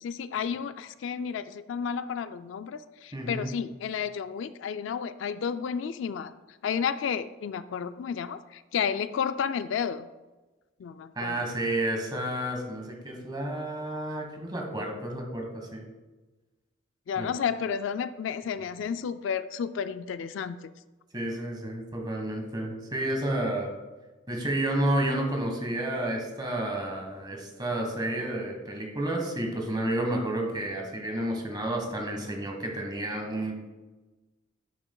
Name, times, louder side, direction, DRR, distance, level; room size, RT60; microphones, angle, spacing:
voice 1, 0.0-6.3 6.6-10.1 10.8-11.4 17.1-20.6, left 7 dB, 65° left, 12 dB, 0.3 m, -32 dB
voice 2, 3.1-3.5 11.1-15.8 17.2-17.3 21.1-23.7 24.3-33.7, right 1 dB, 20° right, 2 dB, 1.4 m, -31 dB
11.0 x 6.9 x 2.3 m, 1.2 s
head